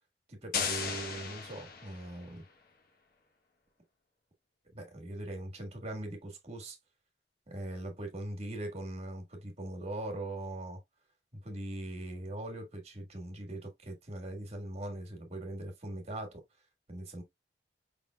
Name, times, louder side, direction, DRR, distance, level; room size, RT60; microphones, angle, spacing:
voice 1, 0.3-2.4 4.7-6.8 7.5-10.8 11.3-16.4 16.9-17.2, right 1 dB, 40° right, 1.6 m, -41 dB
sound 1, 0.5-2.4, left 6 dB, 55° left, 0.9 m, -36 dB
5.3 x 3.6 x 2.2 m
head